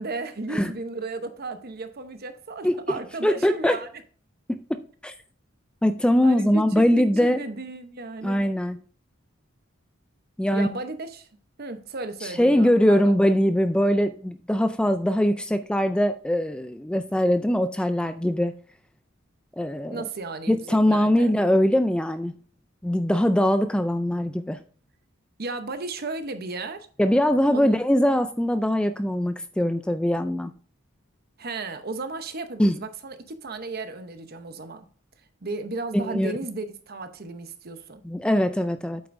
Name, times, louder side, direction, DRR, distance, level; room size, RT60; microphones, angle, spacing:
voice 1, 0.0-3.9 6.2-8.4 10.5-11.3 11.6-13.0 19.9-21.3 25.4-26.9 27.5-27.8 31.4-34.9 35.4-38.0, right 3 dB, 50° right, 0.9 m, -34 dB
voice 2, 3.2-3.8 4.5-5.1 5.8-7.4 8.2-8.8 10.4-10.7 12.2-18.5 19.5-20.1 20.5-22.3 22.8-24.6 27.0-30.5 32.6-32.8 35.9-36.3 38.0-39.0, equal, 5° left, 0.3 m, -22 dB
8.7 x 7.9 x 2.6 m
head